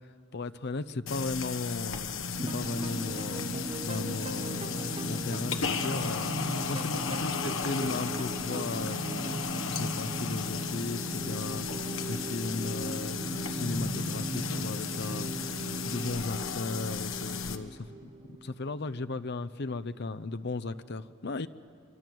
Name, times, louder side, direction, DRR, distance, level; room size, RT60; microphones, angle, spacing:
voice 1, 0.3-3.6 3.8-9.0 9.4-11.7 12.1-15.5 15.8-21.5, left 3 dB, 55° left, 12 dB, 0.7 m, -36 dB
sound 1, 1.1-17.6, left 5 dB, 75° left, 1.4 m, -35 dB
sound 2, 2.4-19.3, right 1 dB, 25° right, 0.8 m, -38 dB
25.0 x 25.0 x 7.7 m, 2.4 s
head